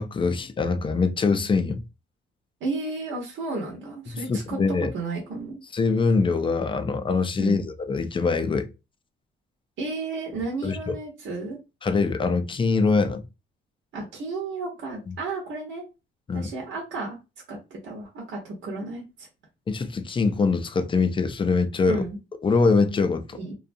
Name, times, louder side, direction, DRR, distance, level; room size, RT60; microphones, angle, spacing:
voice 1, 0.0-1.8 4.3-4.9 5.7-8.7 10.6-10.9 11.8-13.2 15.1-15.2 16.3-16.5 19.7-22.0 22.4-23.4, left 4 dB, 25° left, 0.4 m, -23 dB
voice 2, 2.6-4.6 4.9-5.6 7.4-7.6 9.8-11.6 13.9-15.8 16.3-17.2 17.5-19.3 21.8-22.2 23.3-23.5, right 3 dB, 75° right, 1.0 m, -32 dB
2.6 x 2.3 x 2.5 m
cardioid pair, 90°, 20 cm